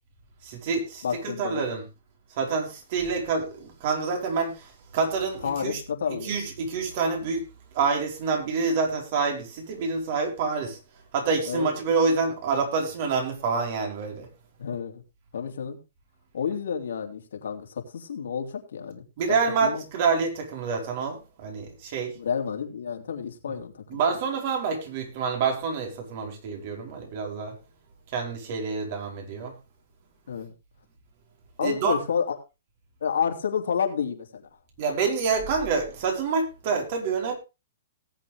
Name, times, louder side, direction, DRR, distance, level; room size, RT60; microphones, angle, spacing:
voice 1, 0.4-1.8 2.4-5.8 6.2-7.5 7.7-10.8 11.1-14.3 19.2-22.1 23.5-23.6 23.9-27.6 28.1-29.5 31.6-32.0 34.8-37.4, right 5 dB, 50° right, 4.8 m, -27 dB
voice 2, 1.0-1.7 5.4-6.4 11.5-11.7 14.6-15.0 15.3-15.8 16.3-19.8 22.1-24.0 30.3-30.5 31.6-32.3 33.0-34.5, left 7 dB, 80° left, 3.1 m, -30 dB
18.5 x 7.9 x 3.6 m
hypercardioid pair, 145°, 0 cm